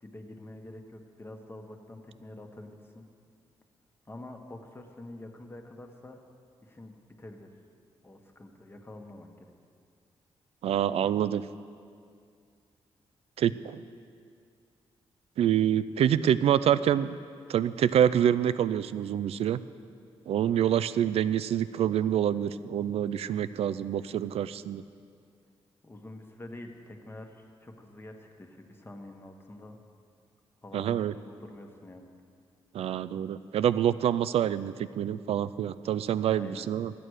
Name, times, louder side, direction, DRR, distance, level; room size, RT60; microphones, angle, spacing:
voice 1, 0.0-3.1 4.0-6.2 6.6-7.5 8.0-9.5 25.8-29.8 30.6-32.1 36.3-36.7, left 1 dB, 20° left, 3 dB, 1.3 m, -46 dB
voice 2, 10.6-11.4 13.4-13.8 15.4-17.1 17.5-19.6 20.3-24.8 30.7-31.1 32.7-36.9, right 10 dB, 75° right, 15 dB, 0.4 m, -26 dB
12.5 x 9.1 x 6.4 m, 2.3 s
cardioid pair, 90°, 10 cm